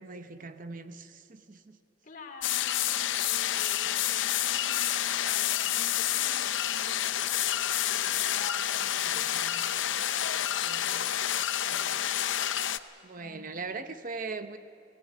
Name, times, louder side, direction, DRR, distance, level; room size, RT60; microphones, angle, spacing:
voice 1, 0.0-1.8 9.0-9.7 10.6-11.2 11.7-12.0 13.0-14.6, right 4 dB, 45° right, 10 dB, 0.8 m, -41 dB
voice 2, 2.0-9.5 13.2-13.4, left 3 dB, 45° left, 2 dB, 2.7 m, -49 dB
sound 1, 2.4-12.8, left 11 dB, 80° left, 0.6 m, -29 dB
18.5 x 16.5 x 10.0 m, 2.7 s
head